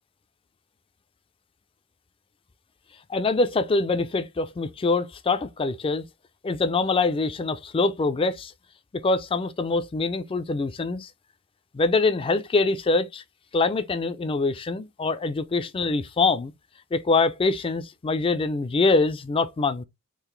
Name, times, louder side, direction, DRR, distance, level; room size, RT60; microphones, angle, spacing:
voice 1, 3.1-6.0 6.4-8.5 8.9-11.1 11.7-13.2 13.5-16.5 16.9-19.8, left 3 dB, 25° left, 0.4 m, -24 dB
3.8 x 2.5 x 3.1 m
head